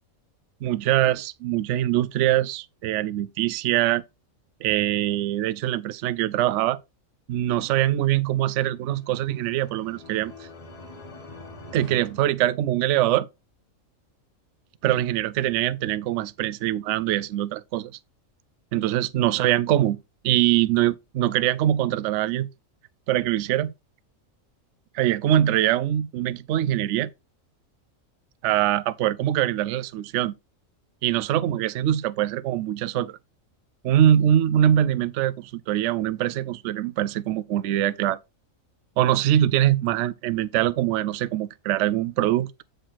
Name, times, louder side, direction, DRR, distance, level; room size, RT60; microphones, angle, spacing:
voice 1, 0.6-4.0 4.6-6.8 7.3-10.3 11.7-13.3 14.8-17.9 18.7-20.0 20.2-22.5 23.1-23.7 24.9-27.1 28.4-30.3 31.0-33.2 33.8-38.2 39.0-42.6, right 12 dB, 70° right, 0.8 m, -23 dB
sound 1, 8.5-13.1, left 2 dB, 30° left, 1.3 m, -45 dB
7.8 x 4.6 x 4.3 m
omnidirectional pair, 1.4 m